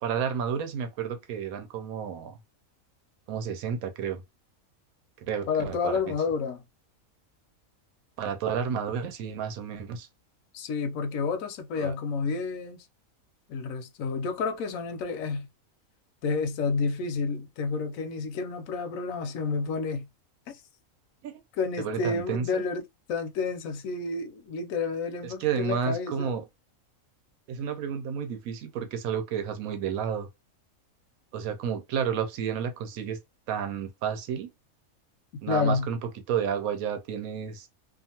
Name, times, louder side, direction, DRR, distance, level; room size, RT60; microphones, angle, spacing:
voice 1, 0.0-2.4 3.3-4.2 5.2-6.1 8.2-10.1 11.8-11.9 21.2-21.4 21.8-22.6 25.2-26.4 27.5-30.3 31.3-33.2 33.5-34.5 35.4-36.0 36.3-37.7, right 7 dB, 80° right, 1.1 m, -31 dB
voice 2, 5.5-6.6 10.5-12.8 13.5-15.5 16.2-20.1 20.5-20.6 21.6-22.8 23.1-26.4 35.5-35.9, left 4 dB, 75° left, 1.0 m, -30 dB
2.6 x 2.4 x 2.8 m
omnidirectional pair, 1.5 m